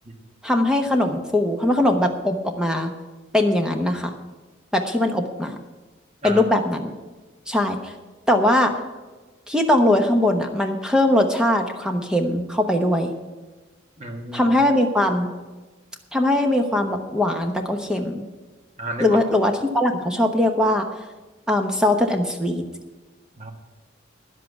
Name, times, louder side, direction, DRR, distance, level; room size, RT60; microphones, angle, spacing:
voice 1, 0.4-2.9 3.3-4.1 4.7-5.6 6.2-6.9 7.5-7.9 8.3-8.7 9.5-13.1 14.3-15.3 16.1-18.2 19.0-20.9 21.5-22.6, left 1 dB, 5° right, 4 dB, 1.0 m, -20 dB
voice 2, 14.0-14.5 18.8-19.2 23.4-23.5, right 1 dB, 35° right, 3 dB, 1.6 m, -32 dB
10.5 x 7.6 x 8.1 m, 1.2 s
head